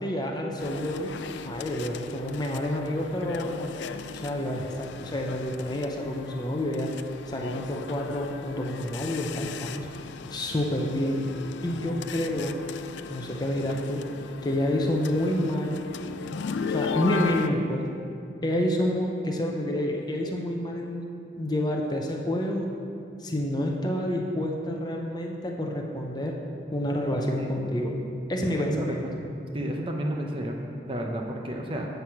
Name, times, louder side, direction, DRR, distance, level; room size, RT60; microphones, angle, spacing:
voice 1, 0.0-1.1 1.5-3.8 4.2-7.0 7.3-9.9 10.3-11.3 11.6-12.6 13.1-14.0 14.4-15.8 16.7-17.9 18.4-21.1 21.4-22.7 23.2-26.3 26.7-27.9 28.3-29.0, left 1 dB, 20° left, 1 dB, 0.6 m, -28 dB
sound 1, 0.6-17.5, left 5 dB, 75° left, 0.3 m, -37 dB
voice 2, 28.4-29.0 29.5-30.6 30.9-31.9, right 1 dB, 30° right, 1 dB, 0.7 m, -31 dB
7.9 x 6.3 x 5.7 m, 2.5 s
head